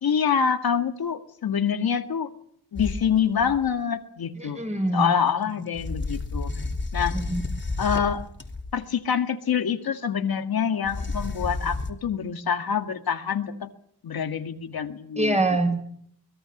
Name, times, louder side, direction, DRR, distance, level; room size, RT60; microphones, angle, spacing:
voice 1, 0.0-2.3 2.7-4.6 4.9-6.5 6.9-7.2 7.8-8.3 8.7-13.7 14.0-15.6, left 7 dB, 65° left, 6 dB, 2.0 m, -26 dB
sound 1, 2.8-3.7 5.7-8.8 10.8-11.9, left 3 dB, 30° left, 3.4 m, -31 dB
voice 2, 4.4-5.1 7.1-7.4 15.2-15.8, right 2 dB, 15° right, 6 dB, 6.0 m, -24 dB
24.5 x 21.0 x 7.3 m, 0.66 s
cardioid pair, 90°, 39 cm